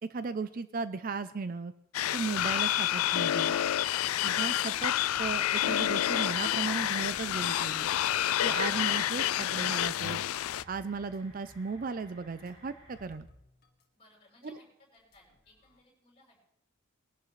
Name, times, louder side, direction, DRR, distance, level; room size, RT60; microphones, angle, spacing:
voice 1, 0.0-1.7 2.1-3.6 4.2-4.9 5.2-7.9 8.4-10.2 10.7-13.3, right 4 dB, 40° right, 13 dB, 0.4 m, -36 dB
sound 1, 1.9-10.6, left 12 dB, 90° left, 0.4 m, -29 dB
sound 2, 2.8-13.0, right 1 dB, 70° right, 3.7 m, -57 dB
sound 3, 5.1-9.0 9.6-13.9 14.1-14.3 14.9-15.8, left 1 dB, 50° left, 1.9 m, -62 dB
voice 2, 13.9-16.4, left 2 dB, 30° left, -3 dB, 5.8 m, -62 dB
21.0 x 11.0 x 3.2 m, 0.77 s
head